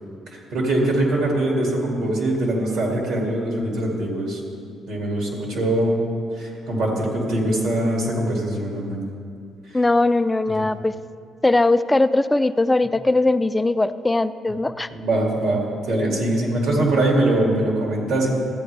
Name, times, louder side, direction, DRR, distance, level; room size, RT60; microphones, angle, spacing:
voice 1, 0.3-4.4 4.9-5.9 6.4-9.0 9.7-9.8 10.6-10.7 14.9-15.6 15.9-18.3, right 1 dB, 80° right, -1 dB, 2.2 m, -22 dB
voice 2, 9.7-10.9 11.4-14.9, left 2 dB, 15° left, 12 dB, 0.3 m, -20 dB
13.5 x 8.6 x 3.3 m, 2.4 s
cardioid pair, 90°, 0 cm